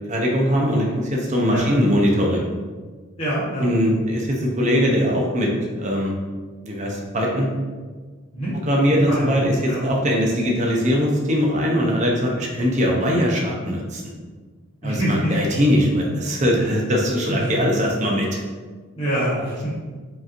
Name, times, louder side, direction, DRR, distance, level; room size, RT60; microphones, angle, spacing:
voice 1, 0.1-2.4 3.6-5.5 5.8-6.1 6.6-7.5 8.6-14.1 14.8-18.4, equal, 30° right, -1 dB, 0.5 m, -21 dB
voice 2, 3.2-3.7 8.3-8.5 9.1-9.3 9.7-9.8 14.8-15.3 17.3-17.6 18.9-19.7, equal, 25° left, -11 dB, 0.9 m, -25 dB
4.9 x 2.9 x 2.5 m, 1.4 s
head